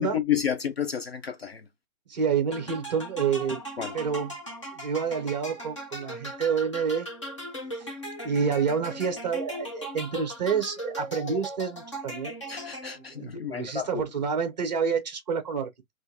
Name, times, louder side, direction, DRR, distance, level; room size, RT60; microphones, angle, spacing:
voice 1, 0.0-1.7 3.8-3.9 12.5-14.0, left 9 dB, 45° left, 0.5 m, -30 dB
voice 2, 2.1-3.6 3.9-4.3 4.7-7.1 7.8-7.9 8.2-12.3 13.1-15.7, right 6 dB, 30° right, 0.9 m, -28 dB
sound 1, 2.5-13.2, equal, 20° left, 0.7 m, -38 dB
3.6 x 2.6 x 2.7 m
hypercardioid pair, 170°, 42 cm